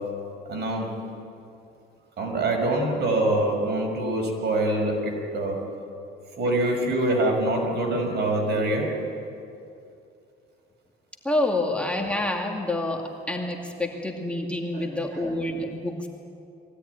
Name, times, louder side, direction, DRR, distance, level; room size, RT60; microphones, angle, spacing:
voice 1, 0.5-0.9 2.2-5.6 6.4-8.9 14.7-15.1, right 1 dB, 60° right, 1 dB, 5.9 m, -25 dB
voice 2, 11.2-16.1, left 2 dB, 5° left, 0 dB, 2.4 m, -28 dB
23.0 x 17.0 x 9.7 m, 2.6 s
cardioid pair, 105°, 19 cm